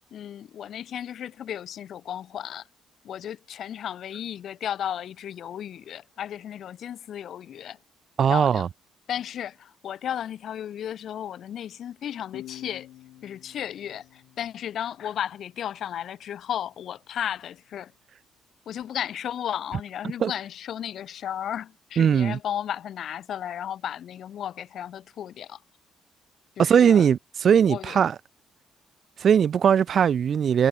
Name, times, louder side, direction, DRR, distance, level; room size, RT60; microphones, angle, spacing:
voice 1, 0.1-2.7 3.0-7.8 8.3-8.7 9.1-12.9 13.2-17.9 18.7-25.6 26.6-27.1 27.7-28.0, left 10 dB, 65° left, 0.6 m, -34 dB
voice 2, 8.2-8.7 20.2-20.3 22.0-22.4 26.6-28.1 29.2-30.7, right 8 dB, 55° right, 0.3 m, -19 dB
sound 1, 12.3-15.7, left 15 dB, 85° left, 2.2 m, -47 dB
cardioid pair, 90°, 0 cm